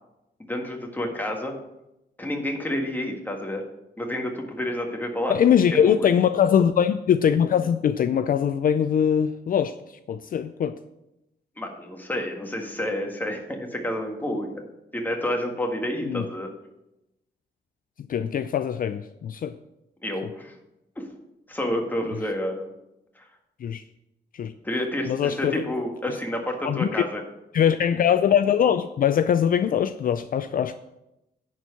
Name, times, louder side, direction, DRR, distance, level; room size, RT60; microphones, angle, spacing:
voice 1, 0.4-1.5 2.2-3.6 4.0-5.3 5.9-6.1 11.6-14.6 14.9-16.5 20.0-20.5 21.0-21.1 21.5-22.7 23.2-23.3 24.6-27.2, left 1 dB, 10° left, 2 dB, 1.7 m, -29 dB
voice 2, 5.3-10.8 16.0-16.2 18.1-19.6 23.6-23.8 24.3-24.5 25.0-25.6 26.1-26.2 26.6-27.0 27.5-30.7, left 8 dB, 55° left, 10 dB, 0.4 m, -22 dB
10.5 x 4.5 x 6.9 m, 0.90 s
cardioid pair, 115°, 17 cm